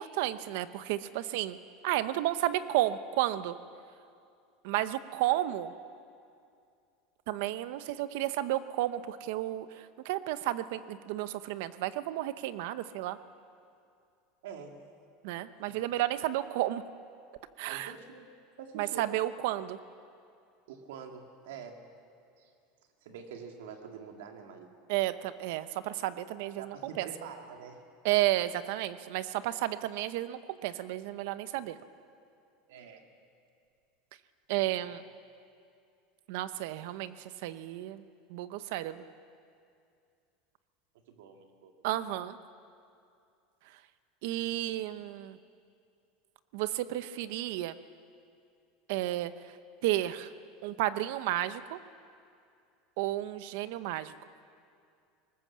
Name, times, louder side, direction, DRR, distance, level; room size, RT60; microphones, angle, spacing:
voice 1, 0.0-1.6 1.8-3.6 4.6-5.7 7.3-13.2 15.2-16.8 17.6-17.9 18.8-19.8 24.9-27.1 28.0-31.8 34.5-35.0 36.3-38.0 38.3-39.0 41.8-42.4 44.2-45.4 46.5-47.8 48.9-49.3 49.8-50.3 50.6-51.8 53.0-54.1, right 14 dB, 60° right, 13 dB, 0.8 m, -32 dB
voice 2, 14.4-14.7 15.6-15.8 17.7-18.3 18.6-19.1 20.7-21.8 22.4-22.5 23.0-24.7 26.6-27.8 32.7-33.0 34.7-34.9 41.1-41.7 42.0-42.1, right 6 dB, 90° right, 4 dB, 2.4 m, -46 dB
20.0 x 19.0 x 7.5 m, 2.4 s
supercardioid pair, 170°, 0 cm